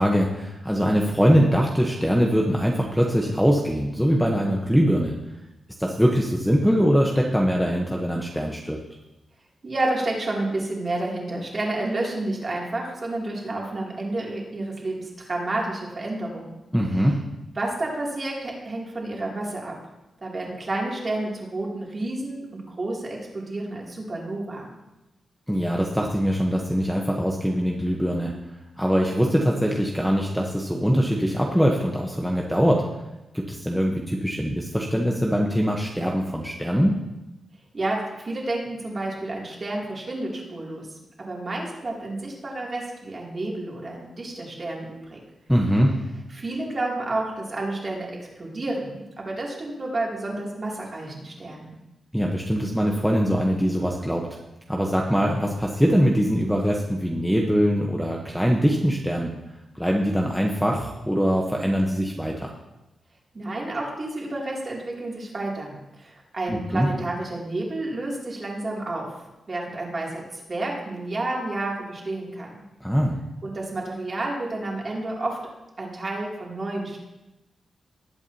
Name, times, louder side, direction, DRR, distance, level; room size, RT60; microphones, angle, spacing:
voice 1, 0.0-5.1 5.8-8.8 16.7-17.1 25.5-28.3 28.8-32.8 33.3-37.0 45.5-45.9 52.1-54.3 54.7-59.3 59.7-62.5 66.5-66.9 72.8-73.2, equal, ahead, -1 dB, 0.9 m, -22 dB
voice 2, 9.6-16.5 17.5-19.8 20.2-24.7 37.7-40.9 41.2-45.2 46.3-51.7 63.3-69.2 69.5-72.5 73.4-75.4 75.8-77.0, right 2 dB, 30° right, -2 dB, 2.6 m, -30 dB
19.5 x 8.2 x 2.8 m, 0.99 s
wide cardioid pair, 145°, 0 cm